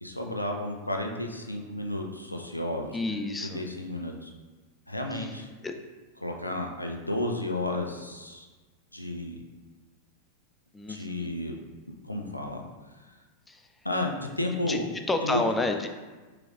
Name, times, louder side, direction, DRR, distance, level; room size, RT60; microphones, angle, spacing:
voice 1, 0.0-4.3 4.9-5.5 6.2-8.5 8.9-9.4 10.9-11.5 12.0-12.6 13.8-14.9 15.2-15.4, left 1 dB, 85° left, 2 dB, 0.5 m, -32 dB
voice 2, 2.9-3.6 5.1-5.3 5.6-5.7 10.7-11.3 13.5-13.7 14.6-14.8 15.1-15.9, left 2 dB, 10° left, 5 dB, 0.4 m, -30 dB
5.9 x 3.4 x 2.5 m, 1.3 s
figure-of-eight pair, 90°, 0 cm